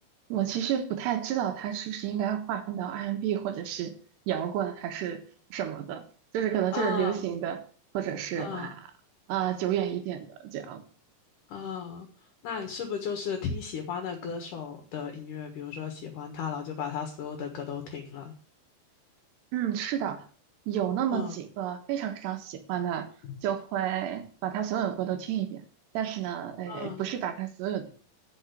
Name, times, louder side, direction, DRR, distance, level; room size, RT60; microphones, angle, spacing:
voice 1, 0.3-3.9 4.3-5.2 5.5-6.0 6.3-7.6 8.0-8.8 9.3-10.8 19.5-20.2 20.7-23.1 23.4-25.6 26.0-27.9, right 10 dB, 90° right, 6 dB, 3.5 m, -30 dB
voice 2, 6.7-7.3 8.4-8.7 11.5-12.1 12.4-18.3 21.1-21.4 23.2-23.3 26.7-27.1, left 6 dB, 60° left, 4 dB, 2.7 m, -35 dB
10.0 x 6.5 x 8.1 m, 0.43 s
omnidirectional pair, 4.8 m